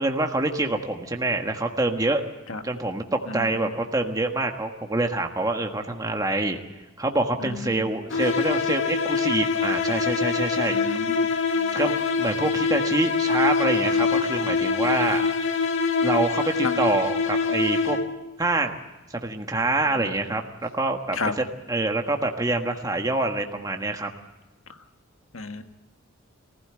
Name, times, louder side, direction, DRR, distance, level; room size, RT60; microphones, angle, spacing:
voice 1, 0.0-2.2 2.6-6.6 7.0-10.8 11.7-15.2 16.0-18.0 18.4-18.8 19.1-24.1, right 2 dB, 20° right, 3 dB, 1.5 m, -26 dB
voice 2, 3.3-3.7 7.4-7.9 10.7-11.3 11.5-11.8 15.1-15.2 16.6-16.8 19.9-20.1 21.1-21.3 25.3-25.6, left 3 dB, 85° left, 7 dB, 1.7 m, -33 dB
sound 1, 8.1-18.3, left 4 dB, 65° left, 2.0 m, -24 dB
23.0 x 16.0 x 8.8 m, 1.1 s
head